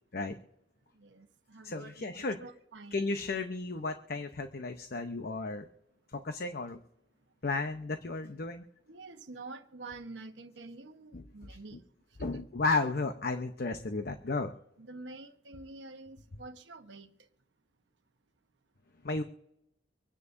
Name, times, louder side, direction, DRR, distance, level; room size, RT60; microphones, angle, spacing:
voice 1, 1.0-3.1 8.9-11.8 12.2-12.5 14.8-17.1, right 3 dB, 75° right, 1.1 m, -48 dB
voice 2, 1.6-2.4 2.9-5.7 6.1-6.8 7.4-8.6 11.1-11.8 12.2-14.5 19.0-19.2, left 3 dB, 60° left, 0.8 m, -34 dB
25.0 x 9.7 x 2.6 m
head